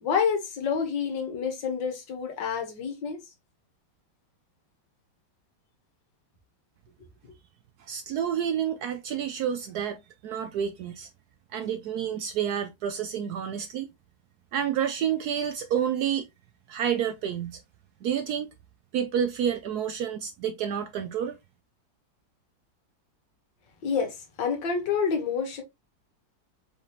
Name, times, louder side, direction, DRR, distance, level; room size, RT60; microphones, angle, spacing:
voice 1, 0.0-3.2 23.8-25.6, left 6 dB, 75° left, 1.8 m, -28 dB
voice 2, 7.8-11.1 11.5-13.9 14.5-16.3 16.7-17.6 18.0-18.5 18.9-21.4, right 9 dB, 70° right, 0.9 m, -29 dB
4.8 x 2.8 x 3.1 m
omnidirectional pair, 2.0 m